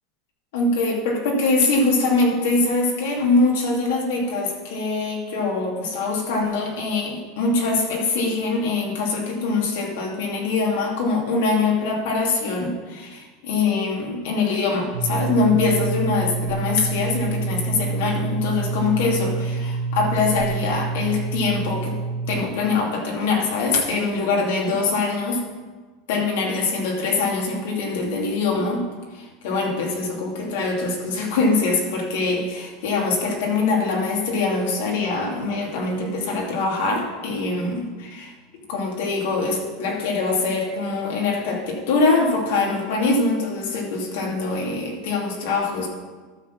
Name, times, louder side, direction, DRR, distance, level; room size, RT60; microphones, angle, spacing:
voice 1, 0.5-22.0 22.3-25.4 26.1-28.8 29.1-38.3 38.7-45.9, left 3 dB, 80° left, -1 dB, 2.4 m, -23 dB
sound 1, 14.9-22.4, right 4 dB, 90° right, 1.4 m, -27 dB
12.5 x 4.2 x 7.2 m, 1.3 s
supercardioid pair, 145°, 0 cm